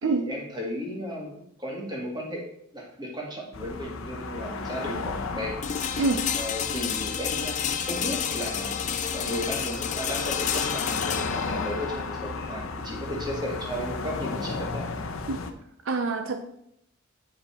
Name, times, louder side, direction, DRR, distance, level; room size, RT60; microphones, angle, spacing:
voice 1, 0.0-2.5 2.7-5.6 6.3-8.8 9.1-14.9, equal, 20° right, -2 dB, 1.9 m, -35 dB
sound 1, 3.5-15.5, left 3 dB, 75° left, 0.7 m, -34 dB
sound 2, 5.6-15.5, left 8 dB, 35° left, 0.5 m, -31 dB
voice 2, 15.9-16.5, right 4 dB, 65° right, 6 dB, 0.6 m, -26 dB
8.2 x 5.1 x 4.3 m, 0.74 s
head